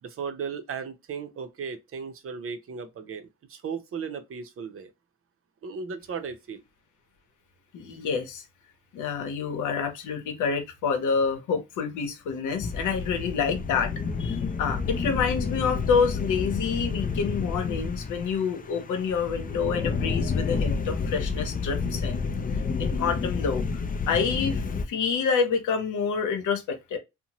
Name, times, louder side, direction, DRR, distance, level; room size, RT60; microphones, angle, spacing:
voice 1, 0.0-4.9 5.6-6.6, right 6 dB, 45° right, 0.6 m, -36 dB
voice 2, 7.7-8.4 8.9-13.9 14.2-22.2 22.8-23.6 24.1-27.0, left 6 dB, 80° left, 0.8 m, -28 dB
sound 1, 12.6-24.9, left 5 dB, 30° left, 0.4 m, -30 dB
2.7 x 2.1 x 2.9 m
cardioid pair, 90°, 30 cm